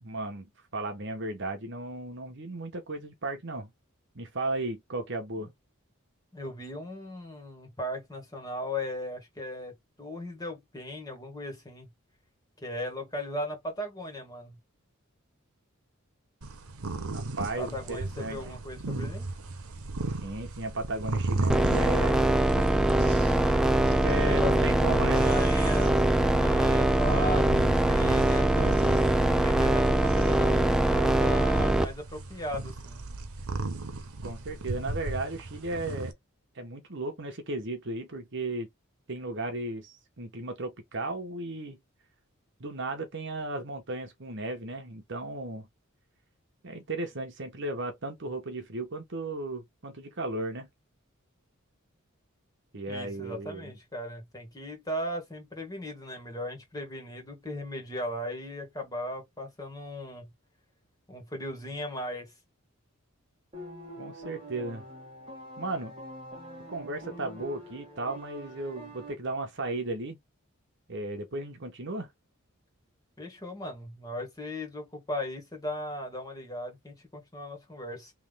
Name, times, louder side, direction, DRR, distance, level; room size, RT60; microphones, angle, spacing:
voice 1, 0.0-3.7 4.1-5.5 17.1-18.6 20.1-22.3 23.8-25.3 34.2-36.1 36.5-38.7 39.1-41.8 42.6-45.7 46.6-50.7 52.7-53.7 64.0-64.8 65.6-65.9 66.7-70.2 70.9-72.1, right 2 dB, 55° right, 1.2 m, -35 dB
voice 2, 6.3-9.7 10.0-11.9 12.6-14.6 17.6-19.3 24.3-33.0 52.9-60.3 61.1-62.3 73.2-78.1, left 1 dB, 15° left, 2.0 m, -37 dB
sound 1, 16.4-36.1, right 2 dB, 85° right, 0.9 m, -36 dB
sound 2, 21.5-31.8, right 1 dB, 5° right, 0.5 m, -23 dB
sound 3, 63.5-69.1, right 1 dB, 25° right, 1.9 m, -45 dB
3.6 x 3.1 x 3.5 m
head